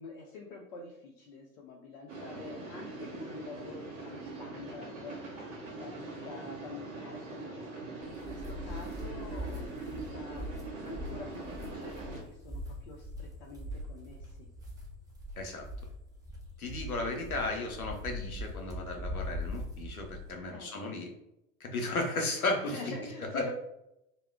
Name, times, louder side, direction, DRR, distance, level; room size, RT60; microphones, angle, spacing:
voice 1, 0.0-14.5 20.5-21.0 22.7-23.5, left 4 dB, 45° left, -1 dB, 0.5 m, -47 dB
sound 1, 2.1-12.2, right 3 dB, 60° right, 1.0 m, -42 dB
sound 2, 8.0-20.4, left 1 dB, 10° right, 0.7 m, -41 dB
voice 2, 15.4-15.7 16.6-21.1 21.6-22.8 23.3-23.4, left 2 dB, 90° left, 2 dB, 0.6 m, -34 dB
2.2 x 2.0 x 3.3 m, 0.85 s
figure-of-eight pair, 70°, 42 cm